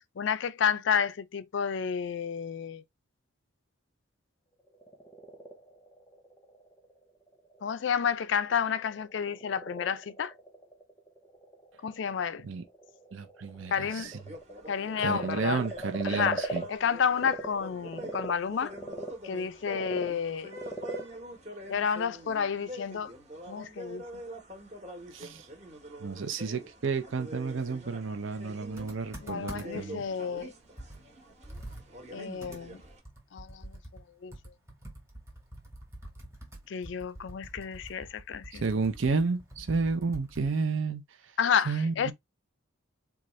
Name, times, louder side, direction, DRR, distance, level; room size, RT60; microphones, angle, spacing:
voice 1, 0.2-2.8 7.6-10.3 11.8-12.5 13.7-14.1 14.7-15.6 16.0-18.7 19.2-20.5 21.7-23.1 23.5-24.2 29.2-30.5 32.1-32.8 33.3-33.8 34.2-34.3 36.7-38.6 41.4-42.1, left 7 dB, 60° left, 0.4 m, -30 dB
Frog, 4.6-17.5 17.8-22.5, right 2 dB, 15° left, 0.7 m, -41 dB
voice 2, 13.1-14.1 15.0-16.6 25.1-25.5 26.0-30.0 38.5-41.0 41.7-42.1, right 4 dB, 70° right, 0.6 m, -31 dB
sound 1, 14.0-33.0, equal, 35° right, 1.1 m, -46 dB
Computer keyboard, 28.8-29.9 30.4-30.5 30.8-40.6, right 1 dB, 15° right, 1.1 m, -46 dB
4.0 x 2.4 x 3.1 m
head